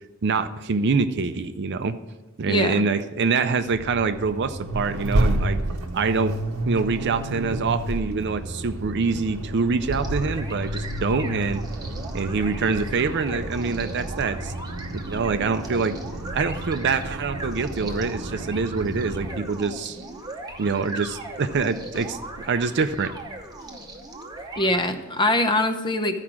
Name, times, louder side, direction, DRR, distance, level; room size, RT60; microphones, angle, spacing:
voice 1, 0.2-1.9 2.4-5.6 5.9-6.3 6.7-11.6 12.1-14.5 15.1-16.0 16.3-20.0 20.6-23.1, right 4 dB, 50° right, 11 dB, 0.5 m, -25 dB
voice 2, 2.5-2.8 24.6-26.2, left 1 dB, 20° left, 8 dB, 0.6 m, -23 dB
Accelerating revving vroom, 3.7-19.4, right 1 dB, 75° right, 0.9 m, -30 dB
sound 1, 9.9-24.9, right 2 dB, 15° right, 0.9 m, -39 dB
Hammer, 16.2-24.0, left 1 dB, 70° left, 1.9 m, -48 dB
13.0 x 4.9 x 5.9 m, 1.1 s
head